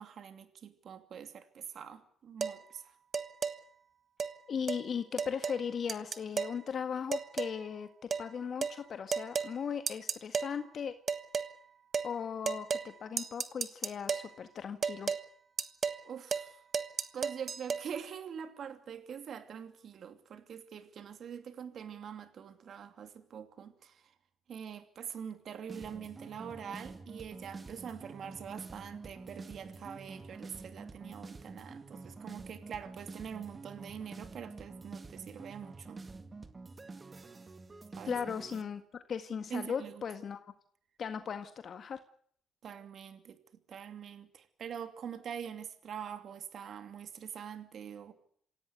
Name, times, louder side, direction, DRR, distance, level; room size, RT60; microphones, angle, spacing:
voice 1, 0.0-2.9 16.0-16.6 17.1-24.1 24.5-36.0 37.9-38.2 39.5-40.0 42.6-43.4 43.7-48.1, right 8 dB, 60° right, 2.6 m, -44 dB
sound 1, 2.4-2.6 3.1-3.6 4.2-4.3 4.7-4.8 5.2-5.6 5.9-6.6 7.1-7.6 8.1-8.3 8.6-8.8 9.1-9.5 9.9-10.5 11.1-11.5 11.9-12.1 12.5-12.9 13.2-14.3 14.8-15.2 15.6-16.0 16.3-16.5 16.7-17.8, right 6 dB, 45° right, 1.5 m, -33 dB
voice 2, 4.5-7.9 8.2-10.9 12.0-15.1 38.0-38.8 39.1-40.4 41.0-42.0, left 7 dB, 55° left, 1.7 m, -37 dB
sound 2, 25.7-38.6, right 3 dB, 30° right, 2.0 m, -48 dB
27.0 x 17.0 x 8.2 m
cardioid pair, 90°, 0 cm